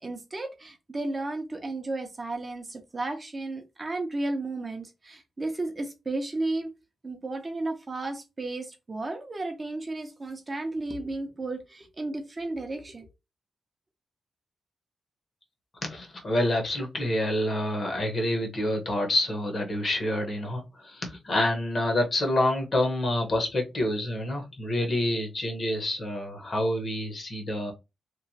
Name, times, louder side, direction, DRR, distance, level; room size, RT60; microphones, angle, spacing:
voice 1, 0.0-6.7 7.0-13.1, right 2 dB, 25° right, 0.5 m, -33 dB
voice 2, 15.8-27.7, left 1 dB, 40° left, 0.8 m, -27 dB
2.9 x 2.1 x 2.6 m
wide cardioid pair, 145°, 0 cm